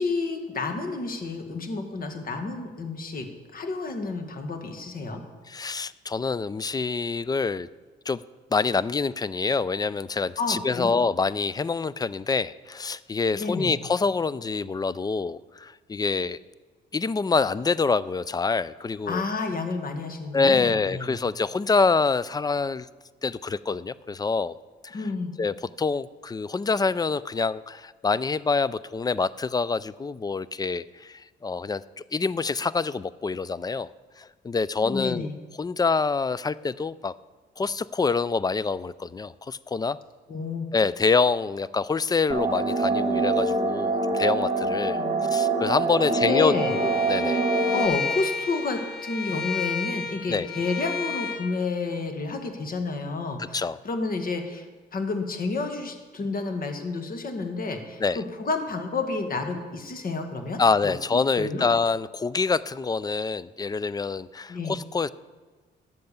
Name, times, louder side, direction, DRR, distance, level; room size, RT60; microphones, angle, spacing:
voice 1, 0.0-3.3 3.5-5.2 10.4-10.9 13.3-13.7 19.1-21.1 24.9-25.3 34.8-35.4 40.3-40.7 44.9-45.2 46.1-46.8 47.7-54.6 54.9-61.7 64.5-64.8, left 3 dB, 45° left, 5 dB, 1.8 m, -30 dB
voice 2, 5.5-7.7 8.1-8.2 8.5-16.4 16.9-19.2 20.3-22.9 23.2-24.6 24.8-25.1 25.4-31.8 32.1-33.9 34.2-35.3 35.6-37.1 37.6-40.0 40.7-45.0 45.3-46.5 46.8-47.4 50.3-50.5 53.4-53.8 58.0-58.2 60.6-65.1, left 4 dB, 20° left, 18 dB, 0.3 m, -26 dB
sound 1, 42.3-47.9, right 3 dB, 35° right, 1.5 m, -25 dB
Bowed string instrument, 46.5-51.4, left 5 dB, 5° left, 3.9 m, -32 dB
10.5 x 7.8 x 6.8 m, 1.4 s
cardioid pair, 90°, 20 cm